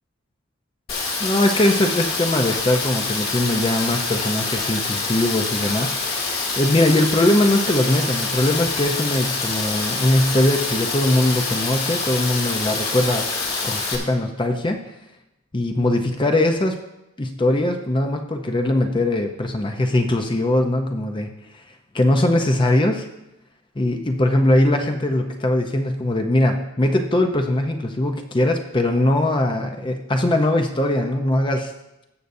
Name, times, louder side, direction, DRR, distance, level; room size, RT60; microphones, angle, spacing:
Rain, 0.9-14.0, left 4 dB, 45° left, 2.0 m, -26 dB
voice 1, 1.2-6.3 6.6-13.2 13.6-14.8 15.5-16.8 17.2-21.6 21.9-23.0 23.8-31.7, left 1 dB, 20° left, 4 dB, 0.6 m, -21 dB
19.0 x 6.8 x 2.6 m, 0.94 s
head